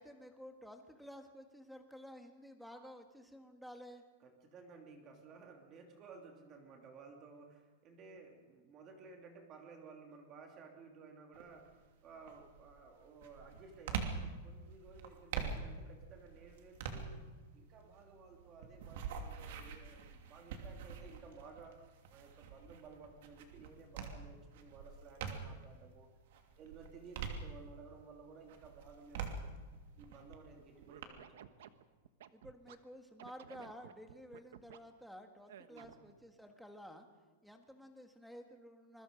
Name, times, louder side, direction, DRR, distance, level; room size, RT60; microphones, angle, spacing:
voice 1, 0.0-4.0 32.3-37.1 37.4-39.0, equal, ahead, 5 dB, 1.6 m, -53 dB
voice 2, 4.2-17.3 17.5-21.8 22.1-26.1 26.6-29.5 30.0-31.8 35.7-35.9, right 4 dB, 25° right, 3 dB, 2.8 m, -56 dB
sound 1, 11.3-11.7 12.2-25.7 26.2-28.0 28.5-31.0, right 6 dB, 55° right, 2.8 m, -45 dB
Scratching (performance technique), 30.8-32.8 33.2-34.8 35.5-36.1, right 11 dB, 70° right, 1.2 m, -54 dB
26.5 x 22.0 x 5.2 m, 1.3 s
supercardioid pair, 175°, 0 cm